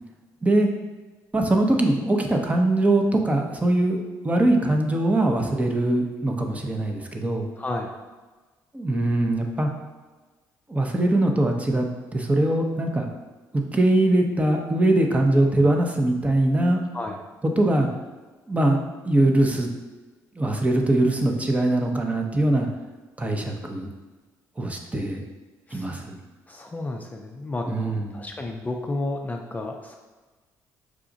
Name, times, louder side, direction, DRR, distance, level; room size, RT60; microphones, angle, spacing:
voice 1, 1.3-7.5 8.7-9.7 10.7-11.9 12.1-13.1 13.5-16.8 17.6-17.9 18.5-19.7 20.4-22.7 23.2-23.9 24.6-25.2 25.7-26.2 27.7-28.2, right 1 dB, 20° right, 2 dB, 0.7 m, -22 dB
voice 2, 7.6-7.9 16.9-17.2 25.7-25.9 26.5-27.7 28.1-30.0, left 2 dB, 20° left, 2 dB, 0.4 m, -31 dB
4.9 x 2.4 x 3.9 m, 1.3 s
supercardioid pair, 80°, 8 cm